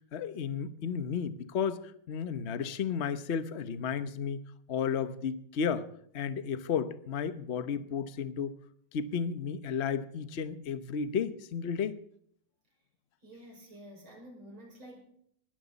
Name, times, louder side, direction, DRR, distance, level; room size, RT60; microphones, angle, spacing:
voice 1, 0.1-4.4 4.7-5.9 6.1-8.5 8.9-12.0, left 7 dB, 45° left, 13 dB, 0.9 m, -33 dB
voice 2, 13.2-15.0, equal, 80° right, 1 dB, 6.3 m, -50 dB
19.5 x 14.0 x 4.1 m, 0.68 s
omnidirectional pair, 2.2 m